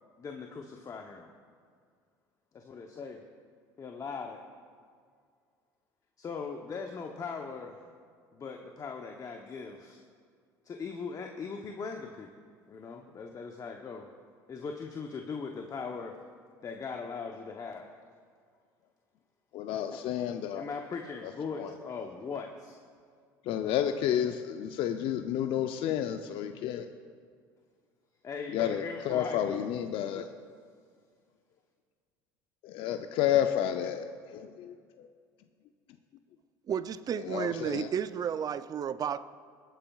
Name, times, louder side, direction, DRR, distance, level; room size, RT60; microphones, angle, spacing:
voice 1, 0.2-1.3 2.5-3.2 3.8-4.4 6.2-7.8 8.3-10.0 10.6-12.3 12.7-14.1 14.5-16.2 16.6-17.9 20.5-22.8 28.2-29.7, left 5 dB, 35° left, 3 dB, 0.8 m, -39 dB
voice 2, 19.5-20.6 21.5-21.7 23.5-26.9 28.5-30.3 32.6-34.1 34.3-35.1 37.2-37.9, left 10 dB, 60° left, 7 dB, 0.5 m, -31 dB
voice 3, 36.7-39.2, right 8 dB, 40° right, 14 dB, 0.5 m, -32 dB
21.5 x 9.0 x 2.4 m, 2.1 s
hypercardioid pair, 80°, 10 cm